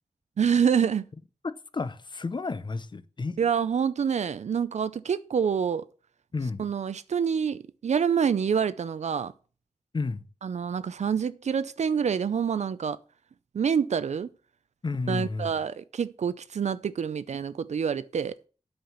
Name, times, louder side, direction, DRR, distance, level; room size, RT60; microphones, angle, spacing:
voice 1, 0.4-1.1 3.4-5.9 6.6-9.3 10.4-13.0 13.5-14.3 15.1-18.3, right 7 dB, 80° right, 0.5 m, -27 dB
voice 2, 1.4-3.4 6.3-6.6 9.9-10.3 14.8-15.5, left 3 dB, 40° left, 0.7 m, -31 dB
8.6 x 5.7 x 7.2 m
wide cardioid pair, 110°, 12 cm